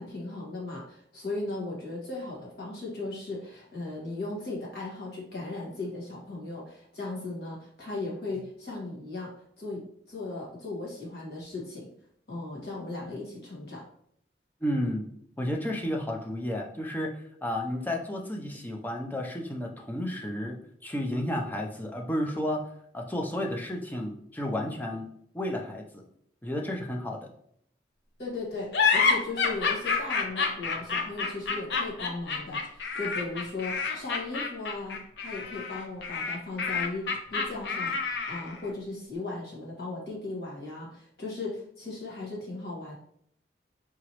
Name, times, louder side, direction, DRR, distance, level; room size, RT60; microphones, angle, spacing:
voice 1, 0.0-9.3 9.6-11.9 12.3-13.8 28.2-42.9, left 2 dB, 60° left, -4 dB, 1.7 m, -37 dB
voice 2, 14.6-15.1 15.4-20.6 20.8-25.1 25.3-26.0 26.4-27.3, left 1 dB, 10° left, 0 dB, 0.5 m, -32 dB
sound 1, 28.7-38.6, left 5 dB, 75° left, 0.6 m, -28 dB
4.8 x 3.0 x 3.0 m, 0.68 s
head